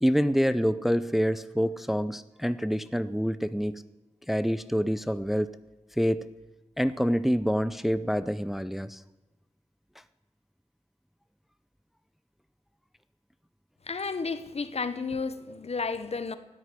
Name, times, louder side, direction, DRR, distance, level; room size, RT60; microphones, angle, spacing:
voice 1, 0.0-3.8 4.3-5.5 6.0-6.3 6.8-9.0, equal, ahead, 0.5 m, -26 dB
voice 2, 13.9-16.4, left 4 dB, 60° left, 1.0 m, -32 dB
12.5 x 9.9 x 9.8 m
wide cardioid pair, 100°, 12 cm